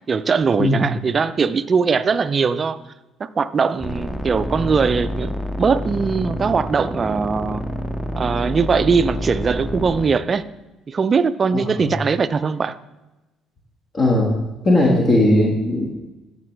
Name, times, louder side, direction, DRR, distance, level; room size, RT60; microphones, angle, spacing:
voice 1, 0.1-2.8 3.2-7.6 8.2-10.4 10.9-12.8, right 5 dB, 40° right, 0.4 m, -20 dB
sound 1, 3.8-10.1, equal, 10° left, 0.7 m, -27 dB
voice 2, 13.9-14.3 14.6-15.9, left 1 dB, 40° left, 1.5 m, -17 dB
13.0 x 4.5 x 3.3 m
hypercardioid pair, 55°, 0 cm